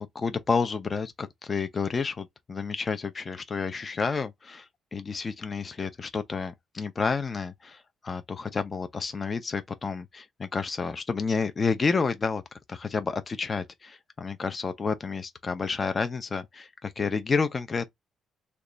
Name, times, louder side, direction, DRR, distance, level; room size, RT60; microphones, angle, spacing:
voice 1, 0.0-12.4 12.7-17.9, left 5 dB, 30° left, 0.4 m, -30 dB
3.0 x 2.2 x 3.8 m
cardioid pair, 135°, 0 cm